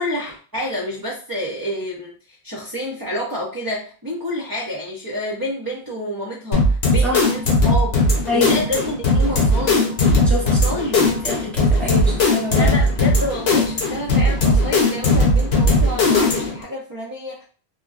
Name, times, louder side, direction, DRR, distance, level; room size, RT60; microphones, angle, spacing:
voice 1, 0.0-9.9 10.4-11.1 12.6-17.5, equal, 30° right, -2 dB, 0.4 m, -29 dB
sound 1, 6.5-16.6, left 2 dB, 70° left, 1.0 m, -18 dB
voice 2, 10.3-10.6 11.0-12.7, left 1 dB, ahead, -3 dB, 0.8 m, -26 dB
2.8 x 2.6 x 2.4 m, 0.39 s
omnidirectional pair, 1.1 m